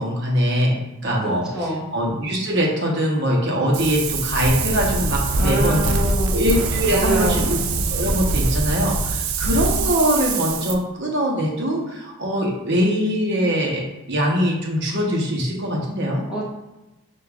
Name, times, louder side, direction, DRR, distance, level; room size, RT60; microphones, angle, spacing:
voice 1, 0.0-5.8 6.3-7.6 7.9-16.2, equal, 50° right, -2 dB, 0.8 m, -22 dB
voice 2, 1.2-1.9 5.4-6.4 6.9-7.5 16.3-16.5, right 2 dB, 5° right, -7 dB, 0.6 m, -25 dB
Wind, 3.7-10.7, right 3 dB, 70° right, 0.4 m, -23 dB
6.3 x 2.3 x 2.3 m, 1.0 s
head